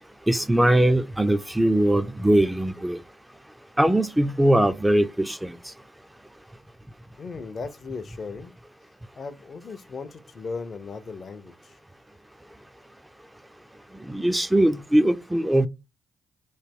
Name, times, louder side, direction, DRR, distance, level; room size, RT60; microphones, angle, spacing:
voice 1, 0.3-3.0 3.8-5.5 14.1-15.7, right 1 dB, 10° right, 0.3 m, -21 dB
voice 2, 7.2-8.5 9.2-11.8, left 4 dB, 50° left, 0.5 m, -37 dB
3.1 x 2.2 x 3.5 m
supercardioid pair, 50°, 0 cm